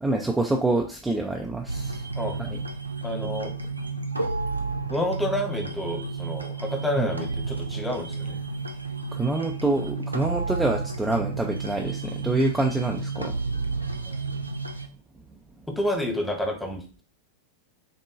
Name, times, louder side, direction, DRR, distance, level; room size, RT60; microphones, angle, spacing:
voice 1, 0.0-2.1 2.4-2.6 7.0-7.1 9.1-13.4, right 2 dB, 10° right, 1 dB, 0.4 m, -26 dB
sound 1, 1.7-14.9, right 3 dB, 85° right, 0.4 m, -31 dB
voice 2, 3.0-3.5 4.9-8.4 14.1-14.2 15.8-17.0, left 1 dB, 5° left, 3 dB, 0.9 m, -29 dB
6.0 x 2.2 x 2.4 m, 0.38 s
figure-of-eight pair, 90°, 0 cm